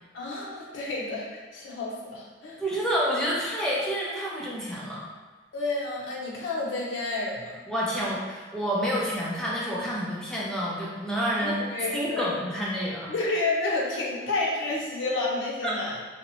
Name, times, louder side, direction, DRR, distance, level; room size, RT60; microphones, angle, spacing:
voice 1, 0.1-2.6 5.5-7.6 11.4-12.3 13.1-16.0, left 2 dB, 75° left, -3 dB, 0.6 m, -30 dB
voice 2, 2.6-5.1 7.7-11.6 11.9-13.1 15.6-15.8, equal, 5° left, -6 dB, 0.4 m, -28 dB
2.8 x 2.1 x 2.7 m, 1.3 s
head